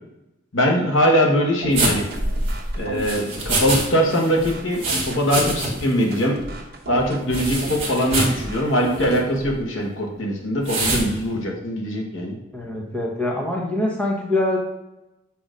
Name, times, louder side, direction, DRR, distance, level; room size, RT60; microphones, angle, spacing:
voice 1, 0.5-2.0 2.7-6.4 6.9-12.4, equal, 80° left, 0 dB, 1.4 m, -21 dB
sound 1, 1.6-9.6, right 1 dB, 50° right, 0.9 m, -35 dB
sound 2, 1.7-3.9 4.1-5.9 6.2-6.3 7.3-8.4 8.9-9.2 10.6-11.1, right 2 dB, 30° right, 1.4 m, -24 dB
voice 2, 12.5-14.6, left 1 dB, 5° left, -2 dB, 1.1 m, -24 dB
7.1 x 2.9 x 5.0 m, 0.96 s
head